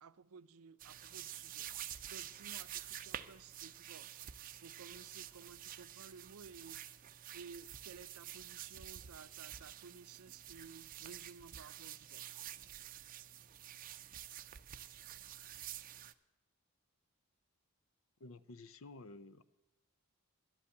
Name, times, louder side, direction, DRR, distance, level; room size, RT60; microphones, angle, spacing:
voice 1, 0.0-4.2 4.6-6.9 7.3-12.4, right 5 dB, 85° right, 0.5 m, -56 dB
sound 1, 0.8-16.1, right 11 dB, 40° right, 0.5 m, -49 dB
voice 2, 18.2-19.4, left 3 dB, 65° left, 0.6 m, -52 dB
11.5 x 8.6 x 7.7 m
head